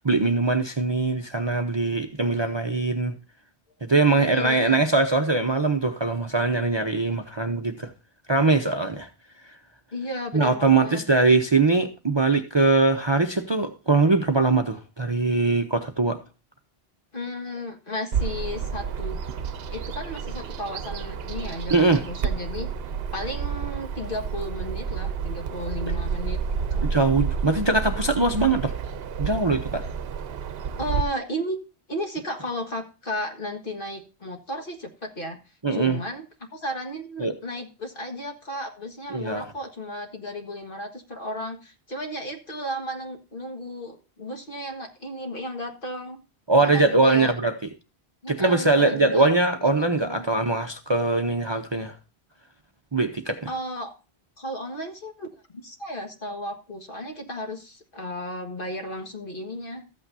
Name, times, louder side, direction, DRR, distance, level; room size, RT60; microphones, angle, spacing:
voice 1, 0.0-3.2 3.8-7.9 8.3-9.1 10.3-16.2 21.7-22.0 26.9-28.7 29.2-29.8 35.6-36.0 37.2-37.4 39.1-39.5 46.5-47.5 48.3-51.9 52.9-53.4, right 3 dB, 30° right, 0.6 m, -22 dB
voice 2, 4.2-4.9 9.9-11.0 17.1-19.2 19.7-22.7 23.1-26.9 30.8-31.6 31.9-35.4 35.7-36.3 36.5-46.2 46.6-47.3 48.2-49.3 49.8-50.3 53.5-53.9 54.4-55.3 55.6-59.8, left 1 dB, 55° left, 1.8 m, -34 dB
Bird vocalization bird call bird song, 18.1-31.0, right 6 dB, 70° right, 0.9 m, -30 dB
14.0 x 8.6 x 2.6 m
omnidirectional pair, 1.1 m